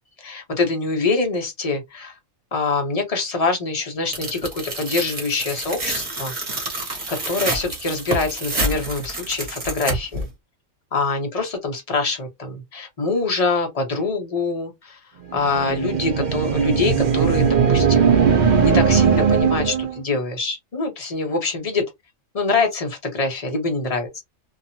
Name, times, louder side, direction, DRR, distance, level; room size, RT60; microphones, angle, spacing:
voice 1, 0.2-2.2 2.5-6.3 7.1-10.3 10.9-15.0 15.3-18.2 18.6-21.9 22.3-24.2, left 3 dB, 35° left, 0.7 m, -24 dB
Tearing, 4.1-10.2, right 1 dB, 35° right, 1.2 m, -28 dB
sound 1, 15.3-20.0, right 6 dB, 65° right, 0.4 m, -18 dB
2.6 x 2.3 x 2.7 m
omnidirectional pair, 1.4 m